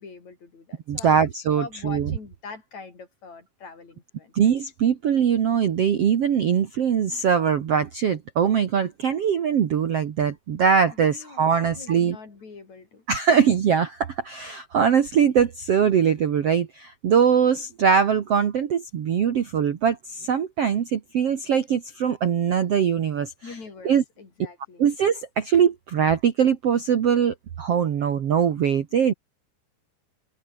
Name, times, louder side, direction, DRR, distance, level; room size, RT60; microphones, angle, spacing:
voice 1, 0.0-4.3 10.9-13.1 23.4-24.9, left 4 dB, 40° left, 5.6 m, -43 dB
voice 2, 0.9-2.1 4.3-12.2 13.1-23.3 23.8-24.0 24.8-29.1, right 7 dB, 80° right, 1.3 m, -22 dB
omnidirectional pair, 5.3 m